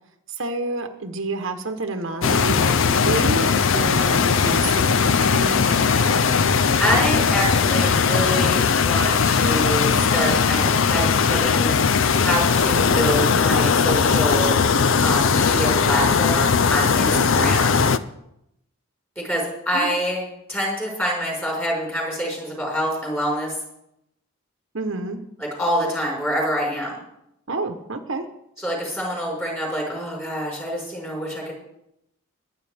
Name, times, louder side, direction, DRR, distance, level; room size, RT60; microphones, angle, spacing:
voice 1, 0.4-6.2 17.1-17.6 19.7-19.9 24.7-25.2 27.5-28.2, right 2 dB, 60° right, 6 dB, 1.0 m, -29 dB
sound 1, 2.2-18.0, left 5 dB, 60° left, 0.5 m, -19 dB
voice 2, 6.8-11.7 12.2-14.7 15.0-17.7 19.2-23.5 25.4-27.0 28.6-31.5, equal, 10° left, -3 dB, 4.8 m, -26 dB
21.5 x 8.8 x 3.5 m, 0.81 s
head